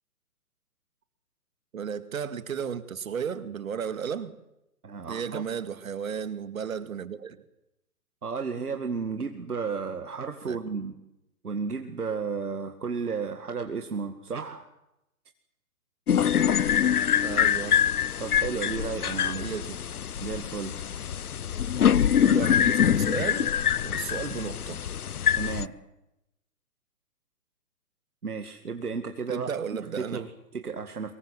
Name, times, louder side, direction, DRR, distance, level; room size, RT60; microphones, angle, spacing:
voice 1, 1.7-4.3 5.1-7.4 10.4-10.6 17.2-17.8 19.3-19.8 22.2-23.5 23.8-24.8 29.3-30.2, right 7 dB, 60° right, 12 dB, 2.2 m, -34 dB
voice 2, 4.8-5.4 8.2-11.0 11.4-14.6 18.2-19.5 20.2-20.7 25.3-25.7 28.2-31.1, right 5 dB, 75° right, 7 dB, 2.2 m, -33 dB
sound 1, 16.1-25.7, left 9 dB, 75° left, 0.8 m, -24 dB
24.0 x 22.0 x 7.7 m, 0.88 s
figure-of-eight pair, 135°, 45 cm